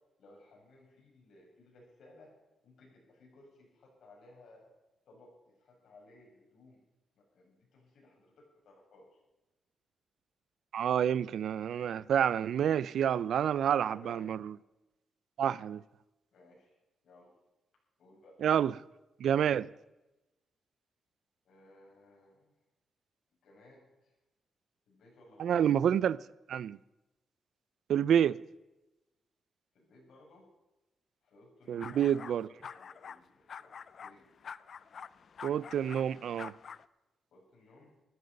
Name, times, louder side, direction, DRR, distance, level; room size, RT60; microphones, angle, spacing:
voice 1, 0.2-2.3 2.6-4.7 5.0-6.8 7.1-9.2 13.7-14.3 16.3-16.7 17.0-17.3 18.0-18.4 21.4-22.5 23.4-24.1 24.8-25.6 29.7-30.5 31.2-34.3 37.3-38.0, left 2 dB, 65° left, 6.8 m, -59 dB
voice 2, 10.7-14.5 15.4-15.8 18.4-18.7 19.2-19.7 25.4-26.2 26.5-26.8 27.9-28.4 31.7-32.5 35.4-36.5, right 9 dB, 70° right, 0.4 m, -28 dB
sound 1, 31.8-32.4 32.6-33.2 33.5-36.9, left 6 dB, 45° left, 0.4 m, -47 dB
14.5 x 13.5 x 5.4 m
wide cardioid pair, 155°, 0 cm